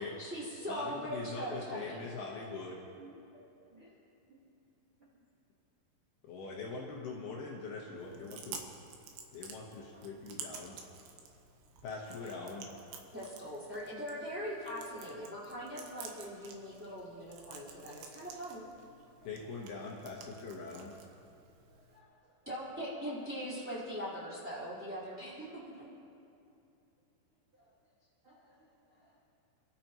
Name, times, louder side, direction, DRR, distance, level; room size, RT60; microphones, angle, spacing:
voice 1, 0.2-2.0 13.1-18.6 22.5-25.9, equal, 5° right, -9 dB, 3.3 m, -41 dB
voice 2, 0.7-2.8 6.3-8.6 9.3-10.8 11.8-12.7 19.2-20.9, left 4 dB, 70° left, -2 dB, 2.7 m, -42 dB
Chewing mastication, 8.0-22.0, right 6 dB, 85° right, 3.6 m, -51 dB
voice 3, 21.8-22.2 28.2-28.7 29.0-29.2, right 2 dB, 55° right, -5 dB, 1.5 m, -58 dB
27.0 x 12.5 x 3.0 m, 2.6 s
omnidirectional pair, 5.4 m